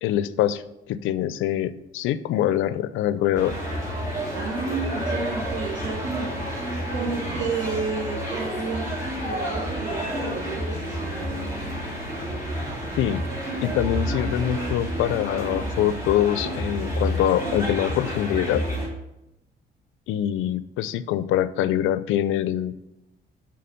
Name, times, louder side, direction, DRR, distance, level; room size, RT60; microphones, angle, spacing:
voice 1, 0.0-3.5 13.0-13.2 13.6-18.6 20.1-22.7, left 11 dB, 90° left, 15 dB, 0.4 m, -24 dB
sound 1, 3.3-18.9, equal, 15° right, 2.7 m, -30 dB
voice 2, 4.3-6.4 6.9-11.4, right 4 dB, 70° right, -2 dB, 1.1 m, -31 dB
6.8 x 3.8 x 5.2 m, 0.90 s
cardioid pair, 90°, 20 cm